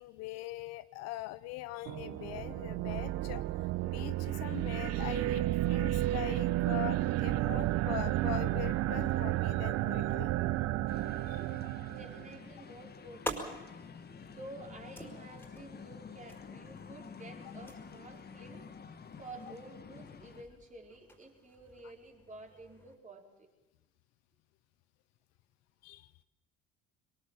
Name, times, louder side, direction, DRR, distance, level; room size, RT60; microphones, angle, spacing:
voice 1, 0.0-10.3 10.6-10.7 11.3-11.7 14.2-14.4 25.8-26.1, left 16 dB, 60° left, 15 dB, 0.8 m, -42 dB
sound 1, 1.8-12.4, right 15 dB, 55° right, 0.8 m, -32 dB
sound 2, 10.9-20.4, left 6 dB, 35° left, 1.7 m, -50 dB
voice 2, 11.9-13.7 14.2-18.7 19.2-23.5, right 2 dB, 25° right, 1 dB, 4.7 m, -51 dB
sound 3, 12.5-22.9, right 1 dB, 5° left, 4.8 m, -48 dB
22.5 x 20.0 x 7.5 m, 1.0 s
hypercardioid pair, 65°, 29 cm